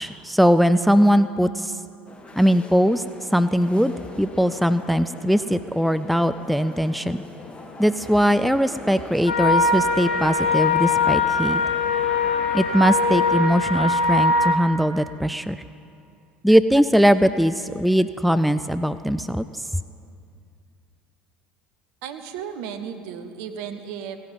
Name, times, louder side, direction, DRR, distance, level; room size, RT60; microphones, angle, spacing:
voice 1, 0.0-1.8 2.4-3.0 3.3-7.2 7.8-11.6 12.5-15.6 16.4-19.6, equal, ahead, 12 dB, 0.4 m, -20 dB
sound 1, 2.1-13.4, left 2 dB, 20° left, 1.7 m, -41 dB
sound 2, 9.3-14.5, left 3 dB, 75° left, 1.0 m, -21 dB
voice 2, 22.0-24.2, right 8 dB, 60° right, 8 dB, 1.0 m, -34 dB
16.5 x 10.5 x 5.3 m, 2.4 s
figure-of-eight pair, 65°, 5 cm